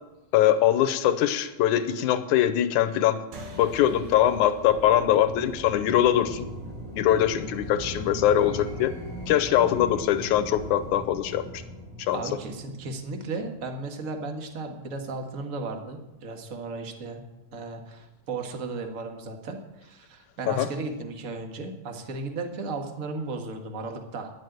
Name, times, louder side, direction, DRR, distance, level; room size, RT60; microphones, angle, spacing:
voice 1, 0.3-3.2 3.6-6.5 7.0-8.9 9.3-11.6 12.0-12.2 20.5-20.7, left 11 dB, 85° left, 10 dB, 2.2 m, -22 dB
sound 1, 3.3-8.1, equal, 80° right, 3.4 m, -45 dB
sound 2, 4.6-13.7, equal, 25° right, 4.4 m, -39 dB
voice 2, 12.1-17.2 17.5-24.3, right 3 dB, 40° right, 4 dB, 1.1 m, -35 dB
10.5 x 7.8 x 9.4 m, 0.97 s
omnidirectional pair, 3.5 m